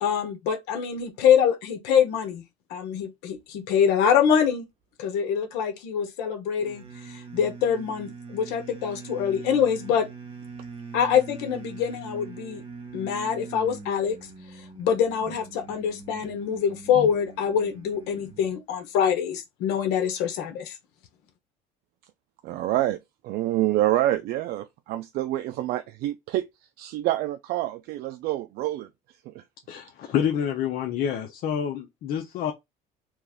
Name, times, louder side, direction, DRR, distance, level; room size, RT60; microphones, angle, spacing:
voice 1, 0.0-2.4 2.7-4.7 5.0-10.1 10.9-12.6 12.9-14.2 14.8-20.8, left 8 dB, 90° left, 0.8 m, -25 dB
sound 1, 6.6-18.5, right 4 dB, 35° right, 1.0 m, -42 dB
voice 2, 22.4-23.0 23.2-26.5 26.8-28.9 29.3-29.4, right 14 dB, 70° right, 0.4 m, -27 dB
voice 3, 29.7-32.5, left 9 dB, 60° left, 0.6 m, -28 dB
3.1 x 2.4 x 3.3 m
cardioid pair, 130°, 17 cm